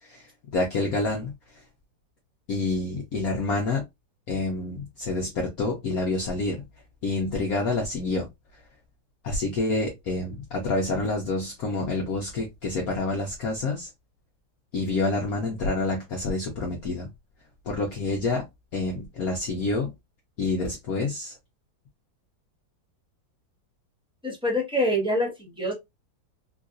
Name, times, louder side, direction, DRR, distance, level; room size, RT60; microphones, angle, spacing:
voice 1, 0.0-1.3 2.5-3.8 4.3-6.6 7.0-8.3 9.2-13.9 14.7-17.1 17.7-18.5 18.7-19.9 20.4-21.3, left 2 dB, 60° left, 1.0 m, -28 dB
voice 2, 24.2-25.7, equal, 5° right, 0.8 m, -25 dB
3.8 x 2.6 x 2.4 m
omnidirectional pair, 2.1 m